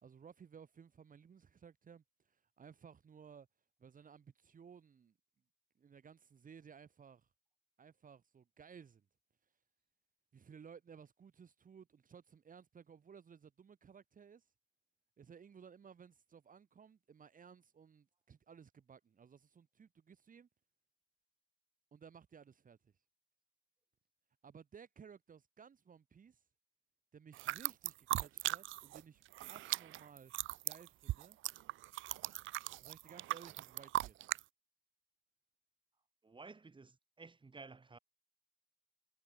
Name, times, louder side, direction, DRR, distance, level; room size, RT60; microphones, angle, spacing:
voice 1, 0.0-3.5 3.8-5.1 5.8-7.3 7.8-9.1 9.4-9.6 10.3-14.5 15.2-20.5 21.9-22.9 24.4-26.5 27.1-29.2 29.5-30.3 30.6-31.4 32.8-34.2, right 7 dB, 45° right, 2.0 m, -58 dB
sound 1, 27.3-29.0 29.3-34.4, right 16 dB, 80° right, 0.5 m, -39 dB
voice 2, 36.2-38.0, right 4 dB, 25° right, 2.5 m, -54 dB
cardioid pair, 90°, 20 cm